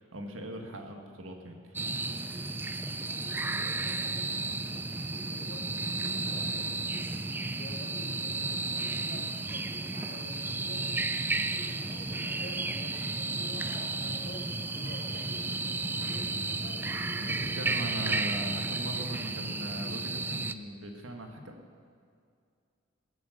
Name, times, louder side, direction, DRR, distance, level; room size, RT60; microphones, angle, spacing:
voice 1, 0.1-2.8 17.2-21.6, right 1 dB, 80° right, 4 dB, 1.8 m, -41 dB
sound 1, 1.7-20.5, right 3 dB, 10° right, 0.3 m, -33 dB
voice 2, 3.0-4.7 5.1-7.1 7.6-11.0 11.6-16.8 17.1-17.5, left 1 dB, 50° left, -1 dB, 2.5 m, -49 dB
21.0 x 8.2 x 6.6 m, 2.3 s
head